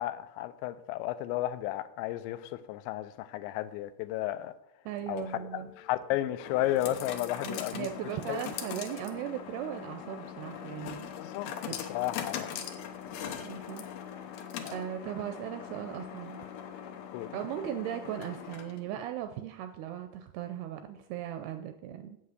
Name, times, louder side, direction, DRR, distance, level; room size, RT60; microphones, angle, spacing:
voice 1, 0.0-4.5 5.1-5.3 5.5-7.9 8.3-8.4 11.2-11.5 11.9-12.5 14.6-14.8 17.1-17.3, left 14 dB, 90° left, 2.9 m, -33 dB
voice 2, 4.9-5.7 7.4-11.1 11.6-11.8 13.4-13.9 14.7-16.4 17.3-22.2, right 11 dB, 80° right, 2.3 m, -38 dB
sound 1, 5.0-19.0, left 8 dB, 75° left, 2.7 m, -41 dB
8.4 x 8.1 x 6.4 m
omnidirectional pair, 5.1 m